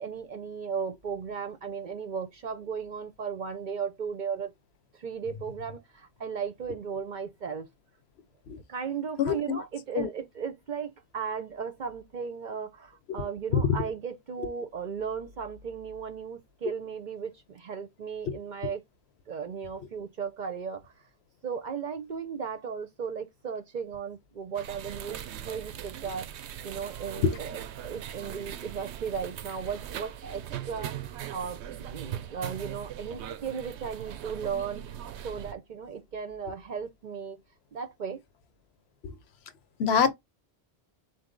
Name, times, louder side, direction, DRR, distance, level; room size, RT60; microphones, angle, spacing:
voice 1, 0.0-4.5 4.9-7.7 8.7-18.8 19.3-21.1 21.4-25.2 25.4-35.0 35.2-37.4 37.7-38.2, right 6 dB, 50° right, 0.7 m, -36 dB
voice 2, 9.2-9.6 9.9-10.1 13.5-13.8 18.3-18.4 27.2-27.3 39.0-39.1 39.8-40.1, left 6 dB, 70° left, 0.9 m, -24 dB
sound 1, 24.5-35.5, right 10 dB, 90° right, 0.9 m, -40 dB
4.1 x 2.6 x 3.7 m
omnidirectional pair, 1.1 m